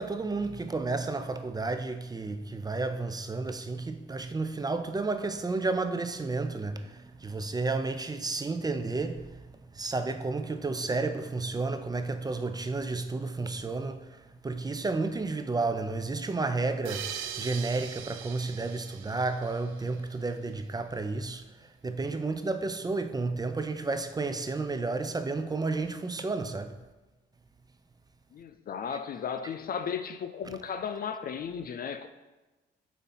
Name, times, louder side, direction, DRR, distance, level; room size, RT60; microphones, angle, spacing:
voice 1, 0.0-9.3 9.7-14.2 14.4-17.1 17.4-21.4 21.8-26.7, right 3 dB, 20° right, 0.5 m, -31 dB
sound 1, 16.9-20.2, right 9 dB, 85° right, 0.6 m, -41 dB
voice 2, 28.3-32.1, left 7 dB, 50° left, 0.4 m, -35 dB
8.2 x 2.7 x 5.5 m
cardioid pair, 90°, 20 cm